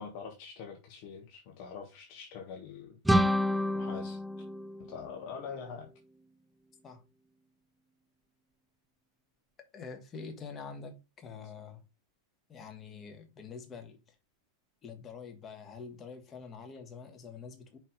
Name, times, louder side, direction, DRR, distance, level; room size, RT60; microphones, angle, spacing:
voice 1, 0.0-3.0 3.7-4.2 4.8-5.9, left 6 dB, 45° left, 1.5 m, -44 dB
sound 1, 3.0-5.8, equal, 5° right, 0.4 m, -29 dB
voice 2, 9.7-11.8 12.5-14.1 14.8-17.8, left 5 dB, 25° left, 1.7 m, -46 dB
5.5 x 5.0 x 5.1 m
figure-of-eight pair, 90°, 0 cm